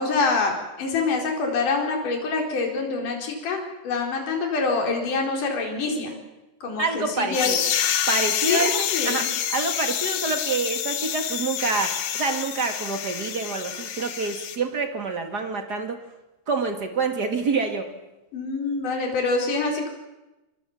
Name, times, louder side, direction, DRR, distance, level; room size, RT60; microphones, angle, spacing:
voice 1, 0.0-6.1 6.6-7.6 8.4-9.3 18.3-19.9, left 4 dB, 50° left, 1 dB, 5.7 m, -26 dB
voice 2, 6.8-7.6 8.1-16.0 16.5-17.9, right 4 dB, 35° right, 5 dB, 1.7 m, -27 dB
sound 1, 7.3-14.6, left 9 dB, 70° left, 3.4 m, -27 dB
28.0 x 23.0 x 7.3 m, 1.0 s
omnidirectional pair, 5.0 m